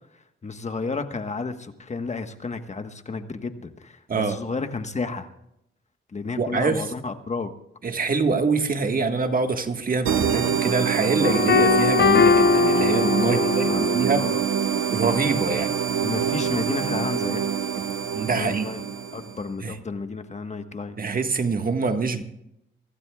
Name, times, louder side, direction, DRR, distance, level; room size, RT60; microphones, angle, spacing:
voice 1, 0.1-5.3 6.1-7.5 13.3-14.4 16.0-17.5 18.3-18.8 19.1-21.0, left 4 dB, 35° left, 7 dB, 1.4 m, -32 dB
voice 2, 6.4-6.9 7.8-14.3 14.9-15.7 18.1-18.7 19.6-19.8 21.0-22.2, right 4 dB, 40° right, 6 dB, 1.7 m, -25 dB
sound 1, 10.1-19.4, right 7 dB, 80° right, 1.1 m, -25 dB
sound 2, 11.2-14.1, left 6 dB, 55° left, 0.8 m, -20 dB
24.0 x 16.5 x 2.4 m, 0.80 s
cardioid pair, 85°, 21 cm